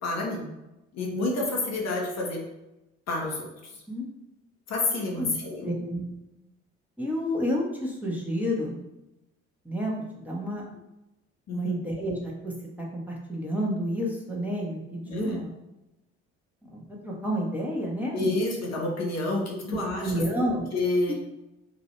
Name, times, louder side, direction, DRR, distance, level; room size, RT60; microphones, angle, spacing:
voice 1, 0.0-0.5 0.9-2.4 3.1-3.5 4.7-5.7 11.5-11.7 15.0-15.4 18.1-20.1 20.7-21.1, left 2 dB, 50° left, -2 dB, 1.0 m, -29 dB
voice 2, 5.6-6.0 7.0-8.8 9.6-10.7 11.5-15.5 16.7-18.4 19.7-20.7 21.1-21.2, equal, 5° right, -4 dB, 1.1 m, -30 dB
2.9 x 2.6 x 4.3 m, 0.95 s
hypercardioid pair, 55°, 35 cm